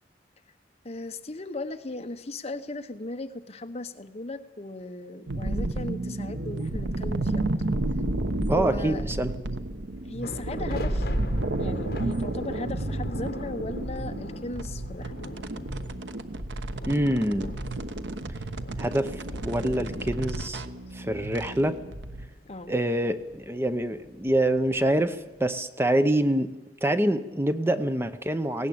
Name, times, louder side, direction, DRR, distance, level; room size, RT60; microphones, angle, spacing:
voice 1, 0.8-7.5 8.5-9.0 10.0-11.1 11.6-15.1 22.5-22.7, left 2 dB, 35° left, 9 dB, 1.0 m, -37 dB
sound 1, 5.3-22.3, right 1 dB, 85° right, 1.1 m, -31 dB
voice 2, 8.5-9.3 16.8-17.5 18.8-20.6 20.9-21.8 22.7-26.5 26.8-28.7, right 1 dB, 15° right, 10 dB, 0.8 m, -26 dB
sound 2, 10.2-25.6, left 1 dB, 55° left, 1.7 m, -42 dB
18.5 x 17.5 x 8.6 m, 1.1 s
head